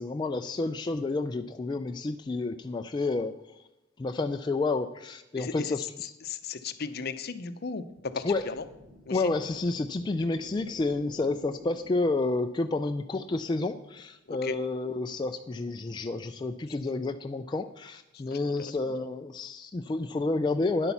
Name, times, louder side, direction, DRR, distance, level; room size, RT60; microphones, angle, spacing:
voice 1, 0.0-3.6 4.0-6.1 8.2-8.5 9.1-20.9, left 3 dB, 20° left, 6 dB, 0.3 m, -30 dB
voice 2, 5.3-5.7 6.2-8.6 9.1-9.3 14.3-14.6 18.3-18.5, left 5 dB, 55° left, 11 dB, 0.6 m, -36 dB
sound 1, 7.8-14.3, equal, 80° right, 3.7 m, -52 dB
9.9 x 8.2 x 5.7 m, 0.98 s
head